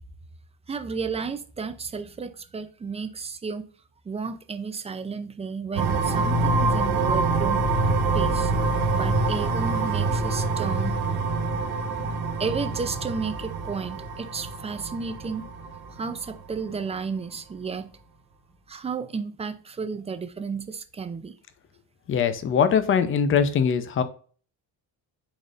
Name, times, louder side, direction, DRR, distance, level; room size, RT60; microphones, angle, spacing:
voice 1, 0.7-3.7 4.1-7.7 8.1-8.5 8.9-11.0 12.4-15.5 15.9-17.9 18.7-21.3, right 5 dB, 15° right, 0.4 m, -32 dB
sound 1, 5.7-16.3, right 3 dB, 75° right, 1.6 m, -25 dB
voice 2, 22.1-24.0, left 7 dB, 35° left, 0.7 m, -22 dB
9.9 x 4.1 x 2.5 m
cardioid pair, 145°, 38 cm